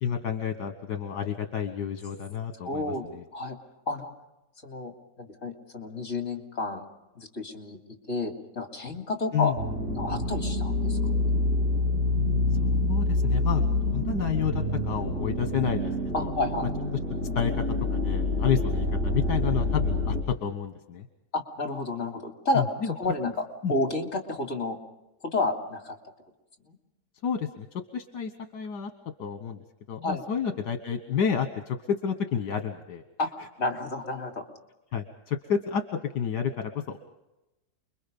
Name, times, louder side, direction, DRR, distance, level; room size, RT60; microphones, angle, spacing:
voice 1, 0.0-3.2 9.3-9.5 12.9-13.6 13.9-15.9 16.2-16.3 17.3-17.6 17.9-21.1 22.5-22.9 23.2-23.3 23.6-23.7 27.2-28.9 29.2-29.6 29.9-33.0 34.9-37.0, left 7 dB, 75° left, 7 dB, 1.8 m, -30 dB
voice 2, 2.6-3.1 3.3-3.6 3.9-4.1 4.6-6.8 7.1-7.8 8.1-9.5 9.9-11.0 16.1-16.7 21.3-24.8 25.2-25.9 26.7-26.8 30.0-30.2 33.2-33.3 33.6-34.4, left 2 dB, 45° left, 3 dB, 3.3 m, -30 dB
sound 1, 9.6-20.2, left 2 dB, 35° right, 3.3 m, -27 dB
29.0 x 22.5 x 5.3 m, 0.98 s
omnidirectional pair, 1.8 m